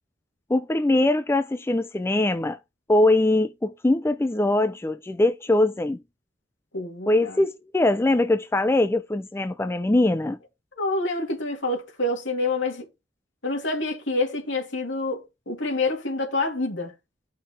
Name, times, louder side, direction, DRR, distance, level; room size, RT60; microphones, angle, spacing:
voice 1, 0.5-2.6 2.9-6.0 7.1-10.4, left 2 dB, 15° left, 0.4 m, -22 dB
voice 2, 6.7-7.4 10.8-12.8 13.4-16.9, left 2 dB, 70° left, 3.0 m, -27 dB
11.5 x 5.7 x 3.2 m
head